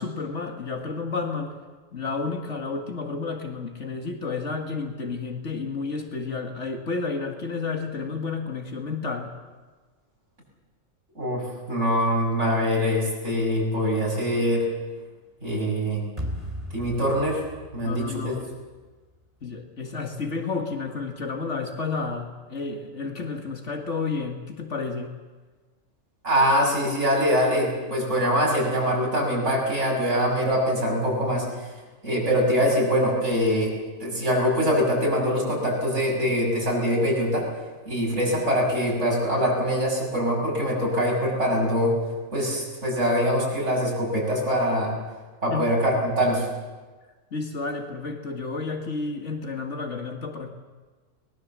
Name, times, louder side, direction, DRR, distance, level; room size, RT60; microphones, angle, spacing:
voice 1, 0.0-1.6 1.9-9.3 17.8-18.5 19.4-25.1 45.5-45.7 47.3-50.5, left 4 dB, 65° left, 4 dB, 2.1 m, -31 dB
voice 2, 11.1-14.7 15.4-16.1 16.7-17.4 17.7-18.3 26.2-31.7 32.0-37.5 37.8-42.0 42.3-45.0 45.4-46.5, equal, 65° right, -2 dB, 6.9 m, -23 dB
sound 1, 16.2-19.3, equal, 30° right, 3.3 m, -37 dB
22.5 x 20.5 x 7.4 m, 1.3 s
omnidirectional pair, 1.3 m